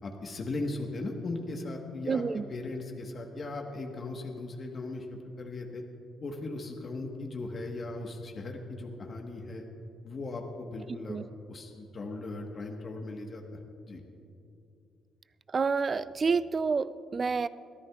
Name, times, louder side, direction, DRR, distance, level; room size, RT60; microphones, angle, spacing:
voice 1, 0.0-2.2 2.5-5.8 6.2-9.6 10.0-11.2 11.5-13.6 13.9-14.0, left 2 dB, 45° left, 2 dB, 1.3 m, -38 dB
voice 2, 2.1-2.4 11.1-11.2 15.5-17.5, right 5 dB, 40° right, 16 dB, 0.4 m, -28 dB
22.5 x 14.0 x 2.4 m, 2.6 s
cardioid pair, 90°, 0 cm